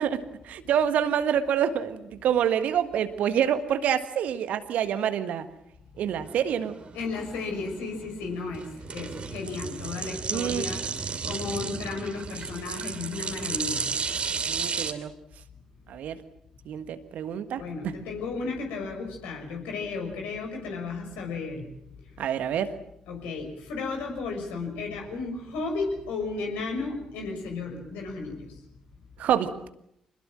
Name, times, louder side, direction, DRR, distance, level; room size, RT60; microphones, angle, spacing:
voice 1, 0.0-5.4 6.0-6.7 10.3-10.6 14.5-15.1 15.9-16.2 16.7-17.6 22.2-22.7 29.2-29.5, right 9 dB, 60° right, 11 dB, 1.6 m, -27 dB
sound 1, 6.0-14.9, right 5 dB, 40° right, 2.6 m, -33 dB
voice 2, 6.9-13.9 17.5-21.7 23.1-28.6, left 4 dB, 65° left, 2 dB, 6.1 m, -34 dB
26.0 x 20.5 x 7.7 m, 0.77 s
figure-of-eight pair, 40°, 3 cm